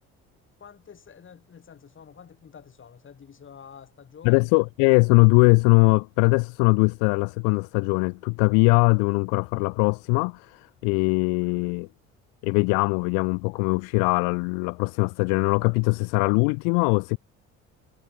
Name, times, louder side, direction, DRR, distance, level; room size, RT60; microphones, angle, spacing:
voice 1, 0.6-4.7, left 7 dB, 45° left, 6.0 m, -48 dB
voice 2, 4.2-11.9 12.4-17.2, left 40 dB or more, 90° left, 0.6 m, -21 dB
supercardioid pair, 80°, 29 cm